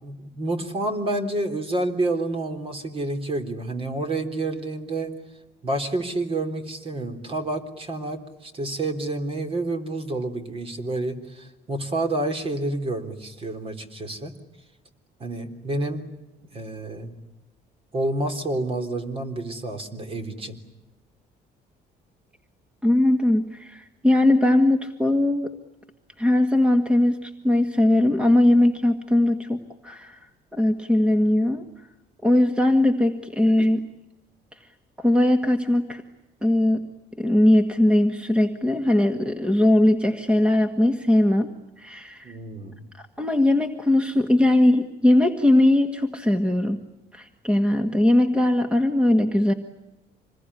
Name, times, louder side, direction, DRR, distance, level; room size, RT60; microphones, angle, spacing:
voice 1, 0.0-5.1 5.6-14.3 15.2-16.0 16.5-17.2 17.9-20.6 42.2-42.8, right 2 dB, 35° right, 7 dB, 3.6 m, -29 dB
voice 2, 22.8-25.5 26.2-31.7 32.2-33.9 34.5-34.6 35.0-36.0 36.4-36.9 37.2-42.4 43.0-46.8 47.1-49.5, left 1 dB, 5° right, 7 dB, 1.8 m, -20 dB
26.5 x 21.0 x 9.8 m, 0.97 s
cardioid pair, 110°, 17 cm